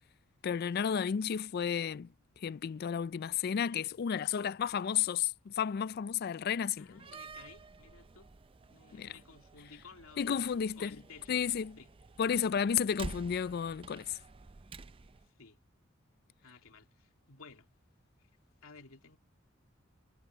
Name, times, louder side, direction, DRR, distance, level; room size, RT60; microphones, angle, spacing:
voice 1, 0.4-2.1 2.4-7.0 8.9-9.1 10.2-11.0 11.3-11.8 12.2-14.2, left 7 dB, 50° left, 0.3 m, -32 dB
voice 2, 6.8-8.3 8.7-10.5 10.8-11.4 11.8-11.9 15.2-15.6 16.4-17.7 18.2-18.3 18.6-19.2, left 4 dB, 90° left, 2.5 m, -55 dB
Slam, 6.9-15.3, right 3 dB, 25° right, 0.4 m, -50 dB
head